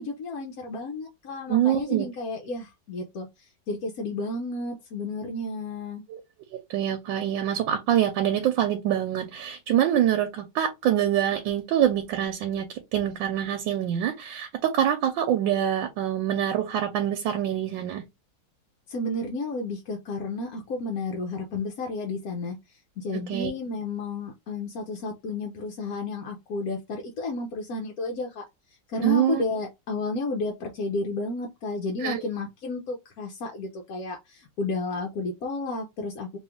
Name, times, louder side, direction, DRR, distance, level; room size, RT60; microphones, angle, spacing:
voice 1, 0.0-6.0 18.9-28.4 28.9-36.4, left 3 dB, 65° left, 1.1 m, -32 dB
voice 2, 1.5-2.1 6.1-6.2 6.5-18.0 23.1-23.5 29.0-29.4 32.0-32.2, right 10 dB, 90° right, 1.4 m, -25 dB
3.1 x 3.0 x 3.5 m
omnidirectional pair, 2.0 m